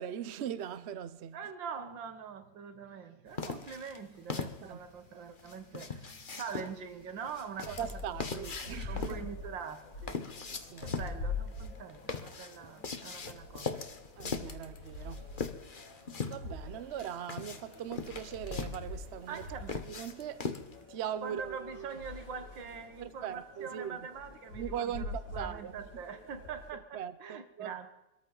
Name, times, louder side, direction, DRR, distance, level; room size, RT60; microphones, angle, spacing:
voice 1, 0.0-1.5 4.6-4.8 7.7-9.3 10.6-11.2 12.6-12.7 14.2-15.3 16.2-19.5 19.8-20.5 20.9-22.0 23.0-24.1 24.5-26.0 26.7-27.9, right 9 dB, 55° right, 0.7 m, -40 dB
voice 2, 1.3-7.9 8.3-10.2 10.8-13.7 19.3-19.9 21.2-27.9, right 6 dB, 80° right, 2.0 m, -44 dB
sound 1, 3.4-20.8, left 5 dB, 35° left, 0.9 m, -41 dB
sound 2, 7.6-26.7, left 3 dB, 65° left, 4.7 m, -45 dB
24.0 x 13.5 x 3.9 m
omnidirectional pair, 2.0 m